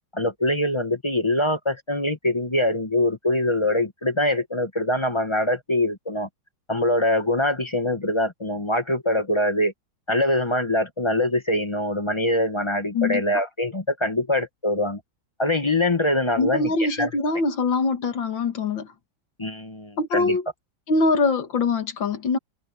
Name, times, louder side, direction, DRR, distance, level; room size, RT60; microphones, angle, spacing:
voice 1, 0.1-6.3 6.7-9.7 10.1-15.0 15.4-17.1 19.4-20.4, left 1 dB, 20° left, 1.0 m, -23 dB
voice 2, 16.4-18.9 20.0-20.4 20.9-22.4, left 3 dB, 70° left, 2.6 m, -23 dB
omnidirectional pair, 2.1 m